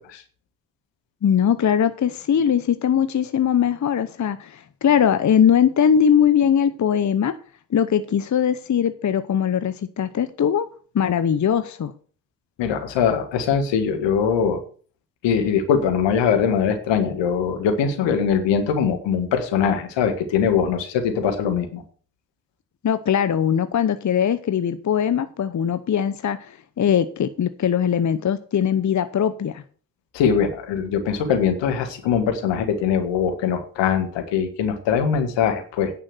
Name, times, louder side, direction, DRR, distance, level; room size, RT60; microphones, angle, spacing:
voice 1, 1.2-7.3 7.7-10.7 10.9-11.9 22.8-29.6, left 8 dB, 40° left, 12 dB, 0.9 m, -20 dB
voice 2, 12.6-14.6 15.2-21.8 30.1-35.9, left 7 dB, 75° left, 7 dB, 2.0 m, -22 dB
9.8 x 5.6 x 8.0 m, 0.42 s
hypercardioid pair, 40°, 44 cm